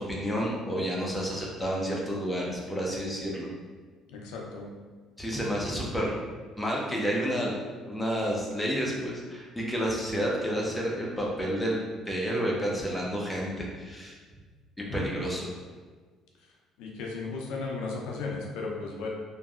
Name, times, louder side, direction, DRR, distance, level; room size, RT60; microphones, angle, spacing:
voice 1, 0.0-3.5 5.2-6.2 6.6-14.1 14.8-15.5, equal, 5° left, -3 dB, 0.6 m, -30 dB
voice 2, 4.1-4.7 14.9-15.2 16.8-19.1, left 3 dB, 90° left, -1 dB, 0.5 m, -35 dB
3.0 x 2.6 x 2.4 m, 1.5 s
cardioid pair, 110°, 0 cm